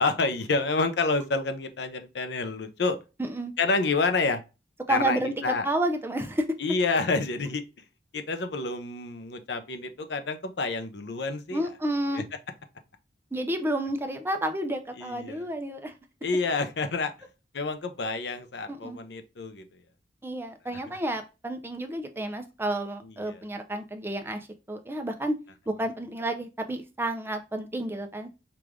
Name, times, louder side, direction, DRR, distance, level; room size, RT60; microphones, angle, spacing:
voice 1, 0.0-3.0 3.6-4.4 4.9-5.7 6.6-7.6 8.1-11.6 12.1-12.2 15.0-15.5 16.2-17.1 17.5-19.6 23.0-23.4, left 3 dB, 70° left, 0.6 m, -28 dB
voice 2, 3.2-3.5 4.9-6.5 11.5-12.2 13.3-15.9 18.7-19.0 20.2-24.4 24.7-25.4 25.7-28.3, right 1 dB, 15° right, 0.5 m, -30 dB
4.8 x 2.5 x 3.5 m
head